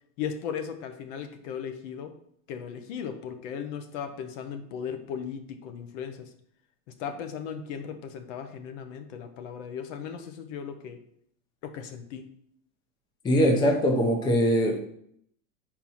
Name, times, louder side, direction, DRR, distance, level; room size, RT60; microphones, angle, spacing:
voice 1, 0.2-2.1 2.5-6.2 7.0-11.0 11.6-12.2, left 7 dB, 60° left, 7 dB, 1.0 m, -37 dB
voice 2, 13.2-14.8, equal, 10° left, 1 dB, 0.6 m, -22 dB
4.6 x 4.4 x 5.5 m, 0.69 s
supercardioid pair, 155°, 42 cm